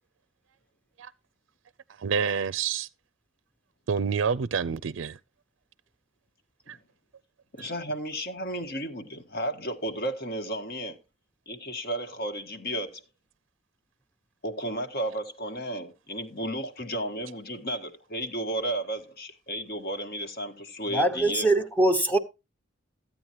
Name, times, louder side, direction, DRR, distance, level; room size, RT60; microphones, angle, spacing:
voice 1, 2.0-2.9 3.9-5.2 6.7-6.8, right 6 dB, 75° right, 0.4 m, -28 dB
voice 2, 7.5-11.0 11.5-13.0 14.4-21.5, right 1 dB, 50° left, 1.6 m, -33 dB
voice 3, 20.9-22.2, right 2 dB, 10° left, 1.0 m, -22 dB
15.0 x 9.1 x 3.0 m
head